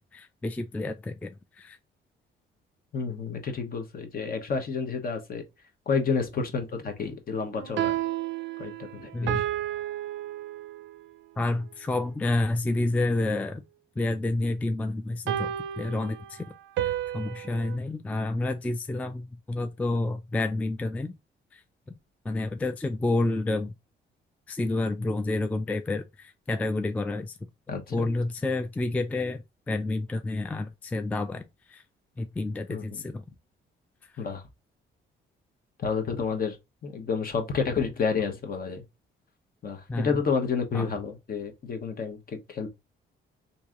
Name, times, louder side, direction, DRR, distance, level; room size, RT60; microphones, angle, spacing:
voice 1, 0.0-1.8 9.1-9.5 11.4-13.6 14.0-16.5 16.8-21.1 21.5-21.6 22.3-23.7 24.5-27.4 27.9-31.8 32.2-33.2 39.9-40.2 40.7-40.9, left 2 dB, 5° left, 0.3 m, -29 dB
voice 2, 2.9-5.4 5.9-8.0 8.6-9.4 27.7-28.0 32.7-33.0 34.2-34.4 35.8-36.6 36.8-38.8 39.6-42.7, left 5 dB, 45° left, 1.0 m, -30 dB
sound 1, 7.6-11.0 15.3-17.8, right 12 dB, 70° right, 0.4 m, -32 dB
3.1 x 2.7 x 3.6 m
cardioid pair, 90°, 20 cm